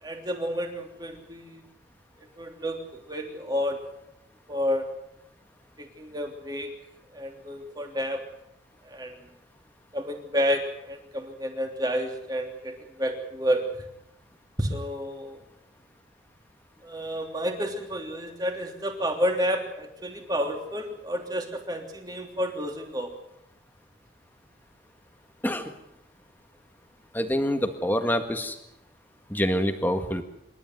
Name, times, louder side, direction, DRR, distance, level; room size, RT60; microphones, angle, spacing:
voice 1, 0.0-1.6 2.4-3.8 4.5-4.9 5.8-6.7 7.1-8.2 8.8-9.2 9.9-13.8 14.6-15.4 16.8-23.1, equal, 20° right, 4 dB, 3.2 m, -30 dB
voice 2, 27.1-28.6 29.3-30.2, equal, 10° left, 7 dB, 1.8 m, -26 dB
27.0 x 12.5 x 9.4 m, 0.82 s
head